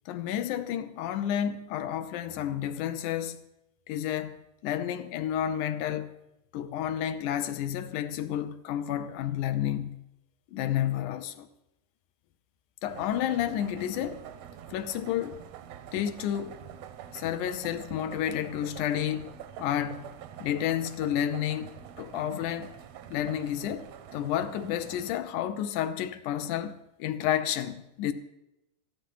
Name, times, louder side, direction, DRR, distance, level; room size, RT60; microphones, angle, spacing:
voice 1, 0.1-3.4 3.9-4.4 4.6-6.1 6.5-10.0 10.5-11.5 12.8-14.2 14.7-15.4 15.9-16.6 17.1-19.3 19.6-20.1 20.4-22.8 23.1-28.1, left 10 dB, 80° left, 2.2 m, -31 dB
sound 1, 12.9-25.2, right 9 dB, 70° right, 1.7 m, -46 dB
14.5 x 11.5 x 5.7 m
omnidirectional pair, 3.6 m